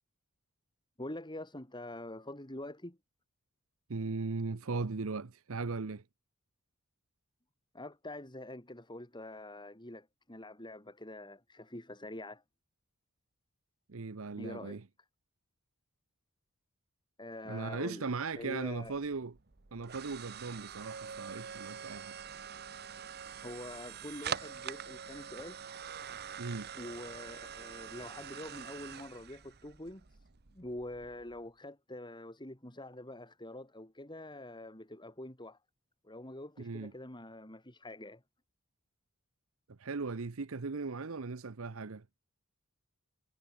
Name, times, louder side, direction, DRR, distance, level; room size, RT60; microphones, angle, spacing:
voice 1, 1.0-3.0 7.7-12.4 14.4-14.8 17.2-18.1 18.3-19.0 23.4-25.6 26.8-30.2 30.5-35.6 36.0-38.2, left 1 dB, 20° left, 4.7 m, -45 dB
voice 2, 3.9-6.0 13.9-14.8 17.5-19.3 19.7-22.1 26.4-26.7 36.6-36.9 39.8-42.0, right 4 dB, 65° right, 0.8 m, -38 dB
sound 1, 18.7-31.4, right 7 dB, 50° right, 1.1 m, -45 dB
head